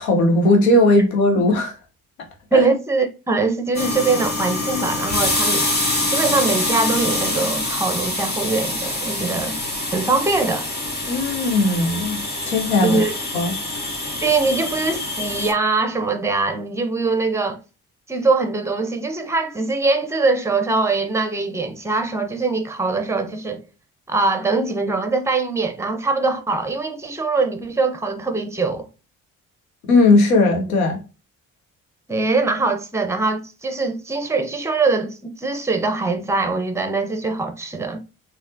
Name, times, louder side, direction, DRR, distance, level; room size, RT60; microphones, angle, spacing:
voice 1, 0.0-1.7 2.5-2.6 11.1-12.2 12.5-13.0 13.3-13.5 29.9-31.0, left 2 dB, 80° left, 0.9 m, -17 dB
voice 2, 2.5-5.7 6.1-9.6 9.9-10.7 12.8-13.1 14.2-17.6 18.1-23.6 24.1-28.9 32.1-38.0, right 3 dB, 5° right, 0.7 m, -22 dB
sound 1, 3.7-15.5, left 2 dB, 25° left, 1.3 m, -25 dB
4.1 x 2.6 x 2.6 m
figure-of-eight pair, 45°, 42 cm